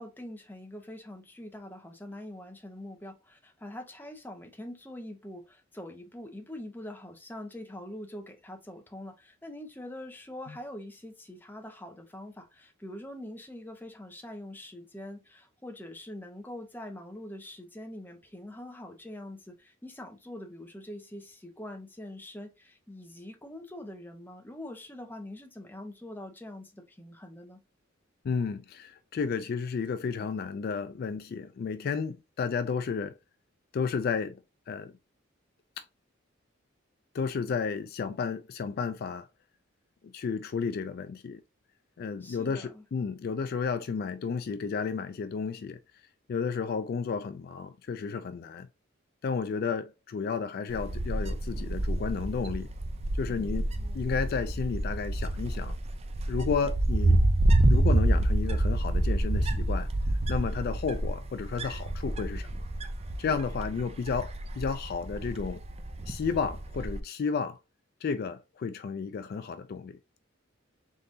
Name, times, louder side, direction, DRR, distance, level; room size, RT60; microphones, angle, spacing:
voice 1, 0.0-27.6 42.2-42.8, left 1 dB, 10° left, 0.8 m, -44 dB
voice 2, 28.2-33.2 33.7-34.4 34.7-34.9 35.8-35.9 37.1-39.3 40.1-41.4 42.0-45.8 46.3-48.7 49.2-52.7 53.1-53.7 53.9-55.7 56.3-57.2 57.7-59.9 60.3-62.7 63.2-65.6 66.1-67.6 68.0-70.0, left 5 dB, 50° left, 0.3 m, -32 dB
Wind, 50.7-67.0, right 1 dB, 30° right, 0.5 m, -28 dB
3.8 x 3.7 x 2.6 m
head